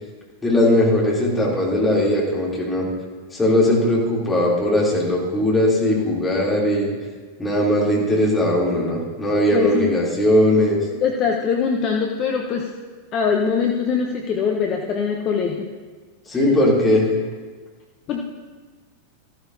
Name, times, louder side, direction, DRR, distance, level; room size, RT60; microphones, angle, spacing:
voice 1, 0.4-2.9 3.3-6.9 7.4-10.8 16.3-17.1, left 1 dB, 15° left, -5 dB, 2.8 m, -19 dB
voice 2, 9.5-10.0 11.0-12.7 13.1-15.7 16.3-16.6 18.1-18.2, left 6 dB, 35° left, 2 dB, 0.9 m, -22 dB
14.0 x 13.0 x 2.7 m, 1.4 s
figure-of-eight pair, 90°, 0 cm